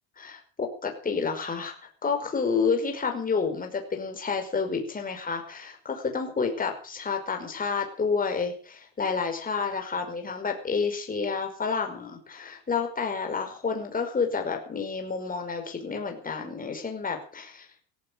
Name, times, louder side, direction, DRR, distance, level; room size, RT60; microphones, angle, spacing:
voice 1, 0.2-1.8 2.0-17.7, left 5 dB, 20° left, 4 dB, 5.3 m, -29 dB
17.5 x 15.5 x 5.4 m, 0.39 s
supercardioid pair, 135°, 46 cm